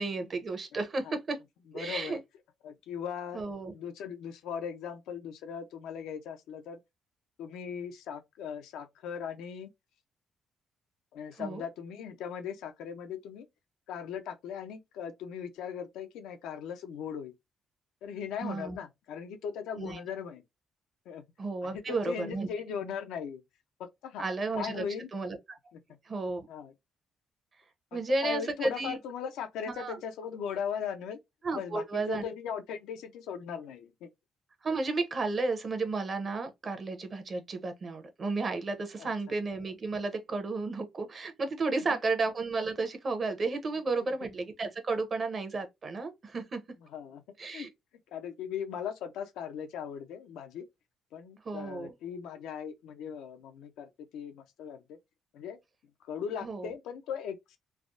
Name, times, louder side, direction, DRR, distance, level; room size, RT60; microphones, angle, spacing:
voice 1, 0.0-1.4 1.7-2.2 3.3-3.7 11.4-11.6 18.4-18.8 19.8-20.0 21.4-22.5 24.2-24.8 25.1-25.4 26.0-26.5 27.9-29.0 29.7-30.0 31.4-32.2 34.6-46.6 47.4-47.7 51.4-51.9 56.4-56.7, right 3 dB, 40° right, 0.8 m, -33 dB
voice 2, 1.7-2.2 2.6-3.4 3.7-6.8 7.4-9.7 11.1-13.5 13.9-17.3 18.0-20.4 21.1-21.2 21.6-23.4 24.0-24.3 24.5-25.1 25.7-25.8 26.5-26.7 27.9-31.2 31.5-34.1 39.0-39.1 41.7-41.8 46.9-47.2 47.5-47.7 48.1-50.6 51.1-55.0 55.3-55.6 56.0-57.6, left 7 dB, 90° left, 0.5 m, -38 dB
3.3 x 2.0 x 2.4 m
cardioid pair, 90°, 0 cm